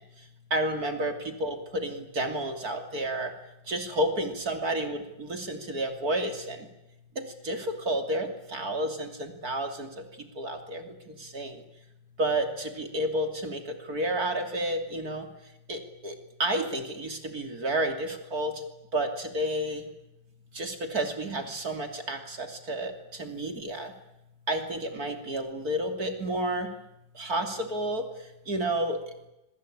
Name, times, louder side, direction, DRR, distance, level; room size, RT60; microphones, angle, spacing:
voice 1, 0.5-3.3 3.7-6.6 7.2-9.9 10.4-10.9 11.2-11.6 12.2-13.6 13.9-15.2 15.7-16.1 16.4-18.6 18.9-19.8 20.5-22.9 23.2-23.9 24.5-26.7 27.2-28.1 28.5-29.0, right 1 dB, 50° right, 5 dB, 3.4 m, -30 dB
25.5 x 24.0 x 8.9 m, 0.90 s
omnidirectional pair, 2.1 m